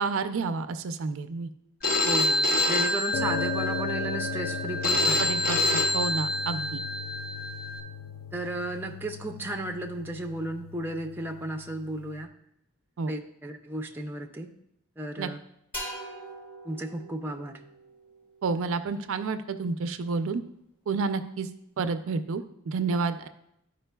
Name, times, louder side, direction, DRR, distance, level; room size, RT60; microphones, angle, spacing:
voice 1, 0.0-1.5 5.2-5.6 5.9-6.8 13.0-13.1 15.2-15.3 18.4-20.4 20.9-21.5 21.8-23.3, right 4 dB, 65° right, 10 dB, 0.4 m, -29 dB
Telephone, 1.8-7.8, left 1 dB, 45° left, 0.8 m, -27 dB
voice 2, 2.0-5.3 8.3-12.3 13.1-14.5 15.0-15.4 16.6-17.6, right 1 dB, 10° right, 3 dB, 0.5 m, -34 dB
sound 1, 3.1-12.2, left 5 dB, 70° left, 0.4 m, -37 dB
sound 2, 15.7-19.4, right 1 dB, 10° left, 2.6 m, -43 dB
12.0 x 4.9 x 2.2 m, 0.78 s
head